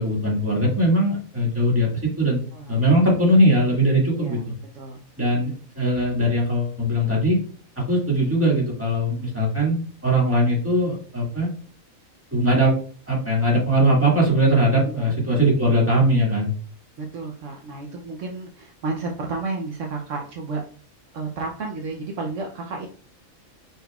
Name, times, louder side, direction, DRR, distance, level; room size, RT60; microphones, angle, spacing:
voice 1, 0.0-2.4 2.7-4.5 5.2-7.4 7.8-11.5 12.3-12.8 13.1-16.5, right 1 dB, 10° right, -4 dB, 1.7 m, -20 dB
voice 2, 2.5-2.8 4.2-4.4 4.7-5.0 14.8-15.1 17.0-20.6 21.1-22.9, right 3 dB, 65° right, 1 dB, 1.0 m, -32 dB
5.3 x 4.1 x 2.3 m, 0.42 s
omnidirectional pair, 1.5 m